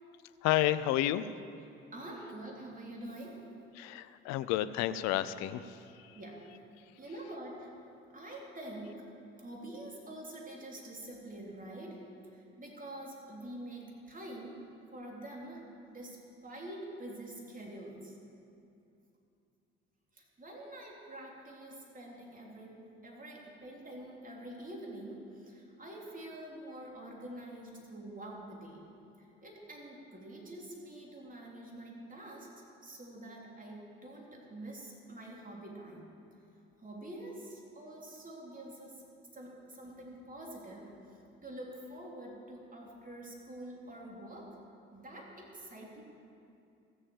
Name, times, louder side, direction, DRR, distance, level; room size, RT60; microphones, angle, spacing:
voice 1, 0.4-1.3 3.8-6.2, left 13 dB, 65° left, 13 dB, 0.5 m, -31 dB
voice 2, 1.9-3.4 6.1-6.4 7.0-7.7 8.1-9.1 9.4-12.0 12.3-14.6 14.9-16.2 16.4-18.1 20.1-28.8 29.2-32.5 32.8-36.1 36.8-39.0 39.3-41.0 41.4-44.5 44.9-46.0, right 1 dB, 25° right, -2 dB, 3.4 m, -46 dB
15.5 x 7.4 x 7.1 m, 2.6 s
hypercardioid pair, 50°, 30 cm